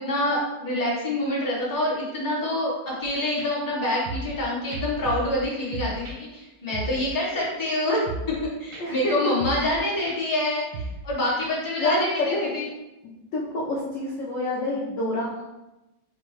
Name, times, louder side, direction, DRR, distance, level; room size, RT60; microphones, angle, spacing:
voice 1, 0.0-8.0 8.3-12.6, left 1 dB, 15° left, -7 dB, 0.9 m, -26 dB
sound 1, 3.0-3.1 3.4-3.5 4.0-4.4 4.7-5.4 5.7-6.2 6.7-7.1 7.4-7.5 8.1-8.4 8.7-8.8 9.4-9.8 10.1-10.2 10.7-11.1 11.4-11.5, right 2 dB, 65° right, 1.0 m, -35 dB
voice 2, 8.8-9.1 9.5-9.7 11.8-12.5 13.3-15.4, left 1 dB, 60° left, -5 dB, 0.8 m, -27 dB
4.2 x 2.3 x 4.7 m, 0.98 s
omnidirectional pair, 2.2 m